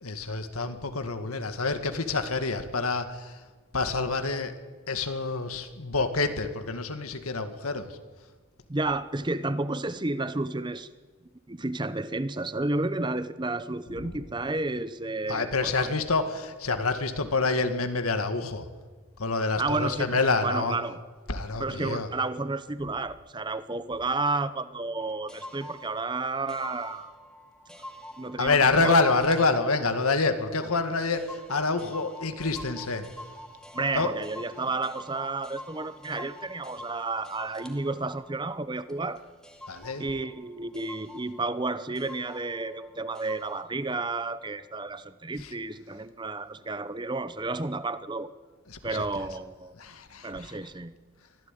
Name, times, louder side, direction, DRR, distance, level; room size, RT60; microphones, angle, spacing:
voice 1, 0.0-3.4 3.7-4.5 4.9-8.0 14.0-14.2 15.3-18.7 19.2-20.8 21.3-22.1 28.4-33.1 33.9-34.1 39.7-40.0 45.4-45.5 48.7-49.0 49.8-50.6, left 3 dB, 90° left, 8 dB, 2.1 m, -27 dB
voice 2, 8.7-10.9 11.5-15.9 19.6-21.0 21.6-27.1 28.2-28.9 33.7-39.2 40.0-48.3 48.8-49.7 50.2-50.9, right 3 dB, 20° right, 14 dB, 0.7 m, -31 dB
sound 1, 25.0-43.6, left 1 dB, 5° left, 2.2 m, -47 dB
23.5 x 15.5 x 9.2 m, 1.4 s
head